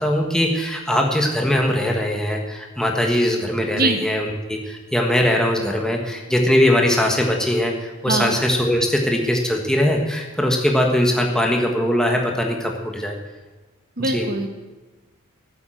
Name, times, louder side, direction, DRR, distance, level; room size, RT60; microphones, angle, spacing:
voice 1, 0.0-13.2 14.0-14.3, left 1 dB, 5° left, 1 dB, 1.4 m, -21 dB
voice 2, 14.0-14.5, right 2 dB, 45° right, 5 dB, 1.5 m, -22 dB
14.0 x 8.5 x 7.8 m, 1.2 s
head